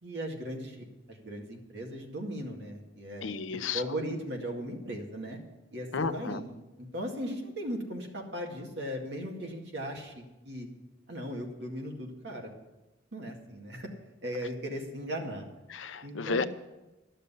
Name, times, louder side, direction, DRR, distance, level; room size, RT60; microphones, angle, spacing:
voice 1, 0.0-3.2 3.7-5.4 5.7-6.5 6.9-10.7 11.1-12.5 13.1-13.9 14.2-15.5 16.0-16.5, equal, 60° right, 1 dB, 2.1 m, -37 dB
voice 2, 3.2-3.8 5.9-6.4 15.7-16.5, left 4 dB, 90° left, 12 dB, 0.7 m, -32 dB
12.0 x 6.8 x 8.4 m, 1.1 s
head